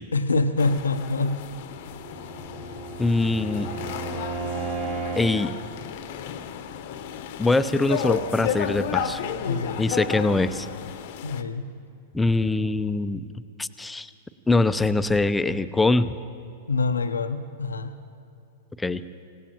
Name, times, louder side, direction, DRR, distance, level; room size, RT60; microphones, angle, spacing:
voice 1, 0.1-1.4 9.4-9.8 11.2-11.7 16.7-17.9, left 3 dB, 80° left, 10 dB, 0.8 m, -25 dB
sound 1, 0.6-11.4, left 8 dB, 55° left, 1.0 m, -33 dB
Bowed string instrument, 1.8-5.5, right 4 dB, 40° right, 4.0 m, -34 dB
voice 2, 3.0-3.7 5.2-5.6 7.4-9.2 9.8-10.7 12.1-13.2 13.6-14.1 14.5-16.2 18.8-19.0, left 2 dB, 10° left, 12 dB, 0.6 m, -23 dB
26.5 x 17.5 x 3.0 m, 2.6 s
figure-of-eight pair, 100°, 0 cm